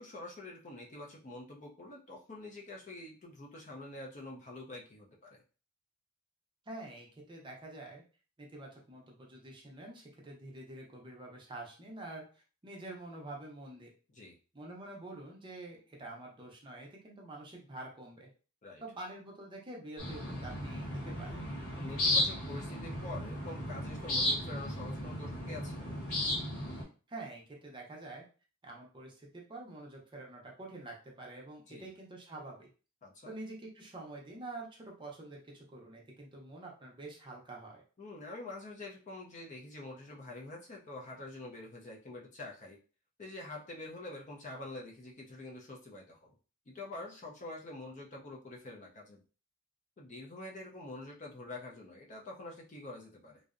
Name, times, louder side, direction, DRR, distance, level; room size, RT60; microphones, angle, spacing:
voice 1, 0.0-5.4 14.1-14.4 18.6-18.8 21.8-25.9 31.7-31.9 33.0-33.3 38.0-42.8 43.2-46.4 46.7-49.2 50.0-53.4, left 2 dB, 35° left, -1 dB, 0.4 m, -46 dB
voice 2, 6.7-8.0 8.4-13.9 14.5-18.3 18.8-21.4 26.7-28.3 28.6-32.7 33.2-37.8, right 2 dB, 20° right, -1 dB, 0.5 m, -47 dB
Damn Crazy Bird, 20.0-26.8, left 1 dB, 75° left, 1.1 m, -35 dB
2.6 x 2.0 x 2.4 m, 0.37 s
head